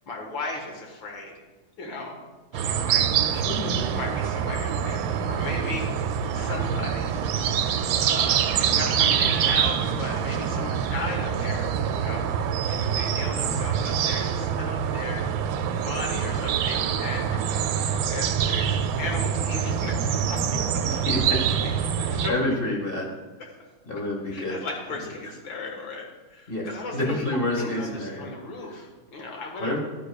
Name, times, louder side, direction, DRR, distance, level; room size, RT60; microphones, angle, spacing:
voice 1, 0.1-1.4 1.8-2.2 2.5-3.1 3.9-5.9 6.3-7.3 7.8-12.3 12.7-15.2 15.7-20.8 21.6-22.4 24.3-27.2 27.6-29.8, left 3 dB, 70° left, 1 dB, 2.2 m, -36 dB
sound 1, 2.5-22.3, right 8 dB, 80° right, 1.3 m, -25 dB
voice 2, 3.3-3.9 13.4-13.6 20.8-21.4 22.3-23.1 23.8-24.6 25.0-25.1 26.5-28.3 28.6-28.8 29.3-29.8, left 1 dB, 30° left, 0 dB, 1.4 m, -29 dB
11.5 x 9.8 x 2.3 m, 1.3 s
omnidirectional pair, 2.2 m